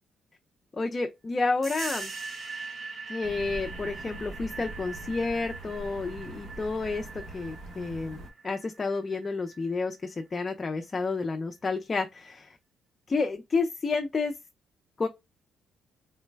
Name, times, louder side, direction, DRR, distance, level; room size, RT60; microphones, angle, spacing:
voice 1, 0.8-2.1 3.1-12.6 13.1-14.3 15.0-15.1, left 3 dB, 30° left, 0.4 m, -30 dB
sound 1, 1.6-9.9, right 4 dB, 30° right, 0.8 m, -42 dB
sound 2, 3.2-8.3, right 1 dB, 60° right, 1.4 m, -43 dB
3.9 x 2.1 x 3.2 m
cardioid pair, 90°, 0 cm